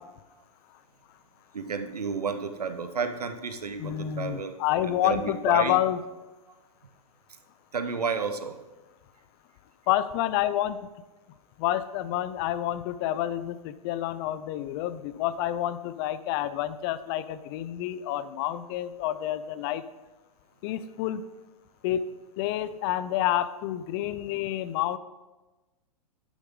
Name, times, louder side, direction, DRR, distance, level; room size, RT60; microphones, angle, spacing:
voice 1, 1.5-4.6 4.9-5.8 7.7-8.6, right 5 dB, 90° right, 8 dB, 1.1 m, -31 dB
voice 2, 3.8-6.0 9.9-10.8 11.6-19.8 20.6-21.2 21.8-22.1 22.4-25.0, left 12 dB, 40° left, 15 dB, 0.6 m, -28 dB
11.5 x 9.7 x 3.9 m, 1.1 s
hypercardioid pair, 120°, 19 cm